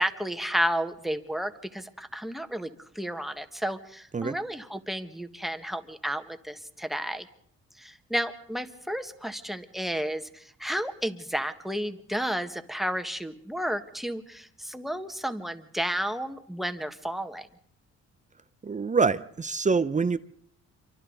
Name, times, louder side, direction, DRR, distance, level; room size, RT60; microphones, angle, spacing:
voice 1, 0.0-7.3 7.8-17.5, equal, ahead, 1.6 m, -32 dB
voice 2, 18.6-20.2, right 4 dB, 25° right, 0.7 m, -25 dB
27.5 x 24.0 x 4.0 m
cardioid pair, 90°, 30 cm